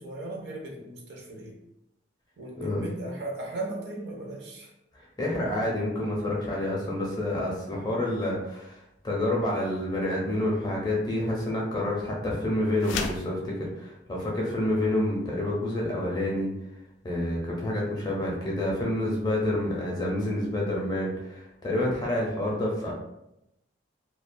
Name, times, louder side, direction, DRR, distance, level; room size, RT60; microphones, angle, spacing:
voice 1, 0.0-1.6 2.4-4.7, right 2 dB, 60° right, 0 dB, 0.6 m, -37 dB
voice 2, 5.2-8.8 9.0-16.5 17.0-22.9, left 1 dB, 20° left, -3 dB, 0.5 m, -28 dB
sound 1, 12.8-13.3, left 5 dB, 85° left, 0.3 m, -32 dB
2.4 x 2.2 x 2.5 m, 0.83 s
head